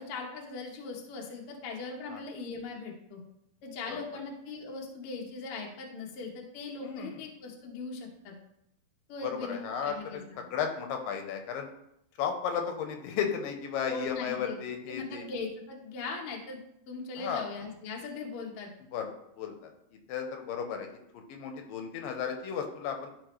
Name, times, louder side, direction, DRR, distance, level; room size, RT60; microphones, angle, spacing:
voice 1, 0.0-3.2 3.6-8.3 9.1-10.4 13.9-14.6 14.9-16.6 16.9-18.7, left 4 dB, 65° left, 0 dB, 1.4 m, -40 dB
voice 2, 6.8-7.3 9.2-11.7 12.2-15.3 17.2-17.5 18.9-19.1 19.4-20.9 21.1-23.1, left 7 dB, 80° left, 4 dB, 2.4 m, -34 dB
12.5 x 4.3 x 3.1 m, 0.79 s
omnidirectional pair, 4.0 m